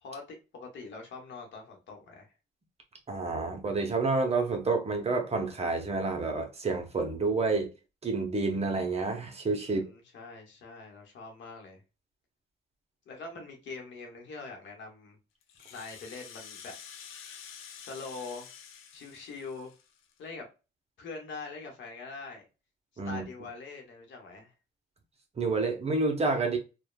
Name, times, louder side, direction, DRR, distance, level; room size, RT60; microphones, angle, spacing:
voice 1, 0.0-2.3 9.6-11.8 13.1-15.2 15.7-16.7 17.8-18.5 18.9-19.7 20.2-20.5 21.0-22.5 23.0-24.5, left 4 dB, 70° left, 0.9 m, -43 dB
voice 2, 3.1-7.7 8.0-9.8 23.0-23.2 25.4-26.6, right 3 dB, 30° right, 0.7 m, -29 dB
Rattle (instrument), 15.4-20.2, left 8 dB, 90° left, 0.5 m, -48 dB
3.0 x 2.2 x 2.2 m
cardioid pair, 90°, 20 cm